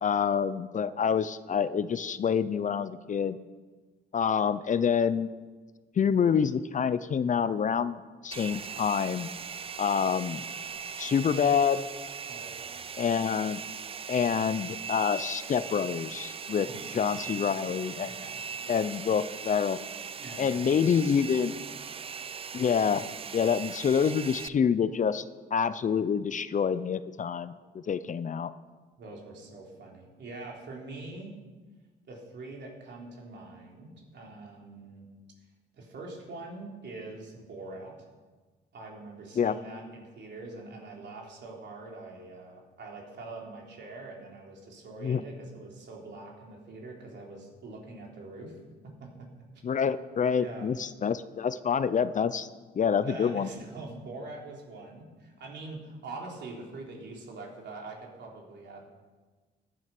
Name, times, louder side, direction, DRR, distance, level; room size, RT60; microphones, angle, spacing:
voice 1, 0.0-3.4 4.1-5.3 6.0-9.3 9.8-10.4 11.0-11.9 13.0-13.6 14.1-18.1 18.7-19.8 20.4-21.5 22.5-23.1 23.3-25.2 25.5-28.5 39.4-39.5 45.0-45.2 49.6-52.5 52.7-53.5, left 7 dB, 40° left, 14 dB, 0.6 m, -27 dB
Domestic sounds home sounds, 8.3-24.5, right 6 dB, 30° right, 0.4 m, -40 dB
voice 2, 12.3-12.9 16.6-17.5 18.1-18.4 20.2-20.8 29.0-31.4 32.1-35.0 35.7-38.0 38.7-48.6 49.0-49.1 50.4-50.7 53.0-58.9, right 2 dB, 60° right, -1 dB, 3.6 m, -44 dB
14.0 x 9.5 x 6.0 m, 1.3 s
cardioid pair, 90°, 20 cm